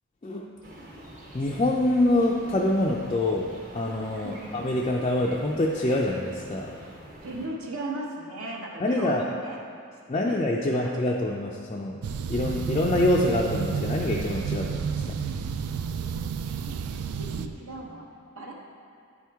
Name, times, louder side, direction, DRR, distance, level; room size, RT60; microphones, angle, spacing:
sound 1, 0.6-7.5, right 1 dB, 40° right, 1.0 m, -46 dB
voice 1, 1.3-6.7 8.8-9.2 10.1-12.0 12.3-15.2, left 1 dB, 25° left, -3 dB, 0.3 m, -25 dB
voice 2, 7.2-9.6 10.1-10.3 10.6-11.0 16.0-16.2 16.6-17.0 17.3-18.0 18.3-18.5, right 2 dB, 70° right, -1 dB, 1.0 m, -37 dB
sound 2, 12.0-17.5, right 6 dB, 85° right, 0.4 m, -31 dB
9.3 x 4.5 x 3.5 m, 2.3 s
head